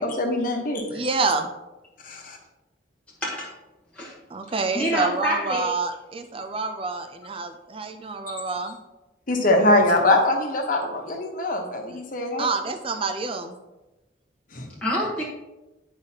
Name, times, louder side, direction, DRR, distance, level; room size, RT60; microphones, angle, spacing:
voice 1, 0.0-1.0 2.0-2.4 9.3-12.5 14.5-14.7, left 2 dB, 45° left, 2 dB, 1.1 m, -23 dB
voice 2, 0.9-1.5 4.3-8.8 12.4-13.6, right 4 dB, 30° right, 6 dB, 0.5 m, -27 dB
voice 3, 4.7-5.7 14.8-15.2, equal, 5° left, -6 dB, 1.1 m, -26 dB
10.0 x 4.9 x 2.8 m, 1.0 s
head